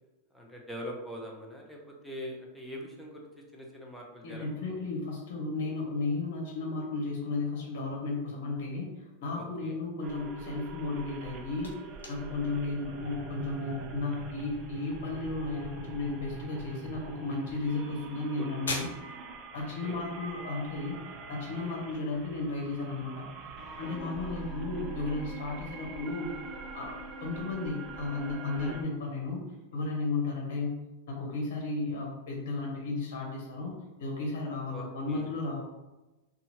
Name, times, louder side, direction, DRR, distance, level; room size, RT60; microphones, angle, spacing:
voice 1, 0.3-4.8 9.3-9.8 18.4-18.5 19.8-20.0 24.0-24.4 28.6-28.8 34.7-35.3, equal, ahead, -2 dB, 0.7 m, -43 dB
voice 2, 4.2-11.8 12.1-18.9 19.5-21.0 21.3-23.3 23.8-26.3 26.7-29.4 29.7-30.7 31.1-33.7 34.0-35.6, left 3 dB, 65° left, -1 dB, 0.9 m, -34 dB
sound 1, 10.0-28.8, right 5 dB, 40° right, 0.5 m, -44 dB
sound 2, 11.0-21.7, left 3 dB, 90° left, 0.6 m, -46 dB
sound 3, 23.6-28.8, left 3 dB, 35° left, 0.4 m, -48 dB
2.7 x 2.4 x 2.8 m, 1.1 s
hypercardioid pair, 105°, 0 cm